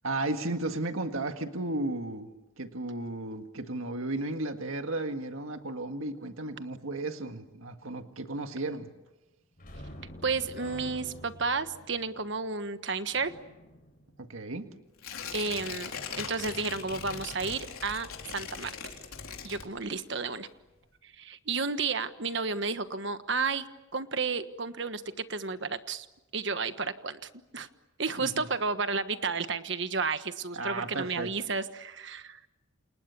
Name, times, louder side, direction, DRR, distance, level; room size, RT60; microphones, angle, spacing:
voice 1, 0.0-8.9 14.2-14.7 28.2-28.3 30.5-31.3, right 2 dB, 80° right, 7 dB, 1.8 m, -34 dB
sound 1, 9.6-15.0 22.3-22.4 22.8-23.0, equal, 40° left, 4.7 m, -48 dB
voice 2, 10.2-13.3 15.3-15.9 16.2-18.7 19.4-20.5 21.0-23.7 23.9-26.1 26.3-27.7 28.0-32.4, right 4 dB, 55° right, 10 dB, 1.4 m, -32 dB
Tearing, 15.0-20.1 20.5-20.6, left 6 dB, 90° left, 4.0 m, -40 dB
29.0 x 28.5 x 7.1 m, 1.0 s
head